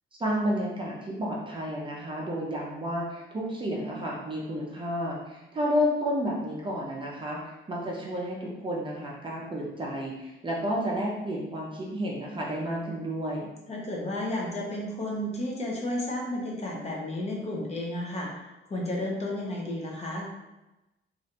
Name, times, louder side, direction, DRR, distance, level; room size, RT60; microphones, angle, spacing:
voice 1, 0.2-13.5, equal, 25° right, -3 dB, 0.5 m, -31 dB
voice 2, 13.7-18.3 18.7-20.3, left 1 dB, 30° left, -2 dB, 0.6 m, -32 dB
3.2 x 2.4 x 2.8 m, 1.0 s
wide cardioid pair, 155°, 21 cm